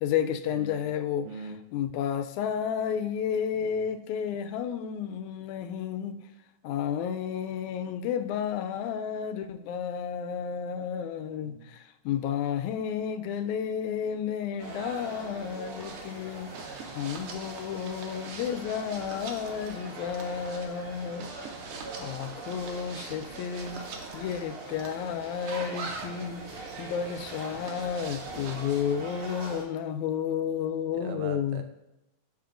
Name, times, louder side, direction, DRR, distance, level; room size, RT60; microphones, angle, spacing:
voice 1, 0.0-6.2 6.6-16.5 16.9-21.3 22.0-31.6, left 8 dB, 90° left, 9 dB, 2.0 m, -32 dB
voice 2, 1.2-1.6 3.5-3.9 11.4-11.7 16.6-17.0 30.9-31.6, right 5 dB, 85° right, 6 dB, 2.1 m, -42 dB
sound 1, 14.6-29.6, right 3 dB, 55° right, 2.0 m, -42 dB
sound 2, 15.7-29.0, right 4 dB, 70° right, 1.6 m, -44 dB
11.5 x 4.3 x 2.5 m, 0.94 s
omnidirectional pair, 3.3 m